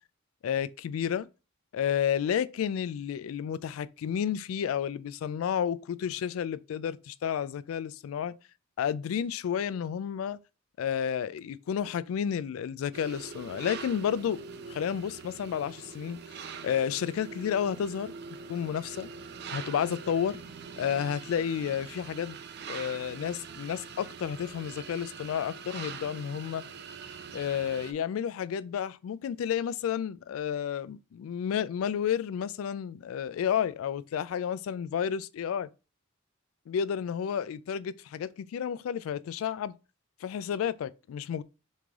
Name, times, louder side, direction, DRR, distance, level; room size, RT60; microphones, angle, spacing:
voice 1, 0.4-1.3 1.7-8.4 8.8-10.4 10.8-14.4 14.7-18.1 18.5-19.1 19.5-20.4 20.8-22.4 22.7-26.7 27.3-35.7 36.7-39.7 40.2-41.4, left 8 dB, 85° left, 0.3 m, -31 dB
sound 1, 12.9-27.9, right 5 dB, 55° right, 0.5 m, -43 dB
3.7 x 3.3 x 3.4 m
head